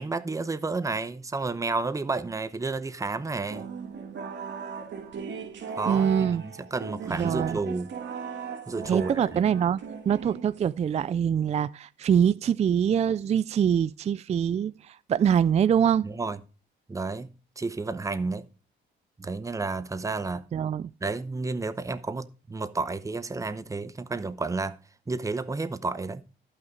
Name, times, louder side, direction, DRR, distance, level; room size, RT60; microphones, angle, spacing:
voice 1, 0.0-3.7 5.7-7.9 8.7-9.4 16.0-16.4 16.9-18.5 19.2-20.5 21.0-24.8 25.1-26.2, right 3 dB, 15° right, 0.7 m, -31 dB
sound 1, 3.5-10.9, right 6 dB, 65° right, 1.7 m, -37 dB
voice 2, 5.9-6.4 7.1-7.6 8.9-9.8 10.1-16.0 20.5-20.9, right 8 dB, 35° right, 0.4 m, -24 dB
12.0 x 5.8 x 4.6 m
cardioid pair, 90°, 20 cm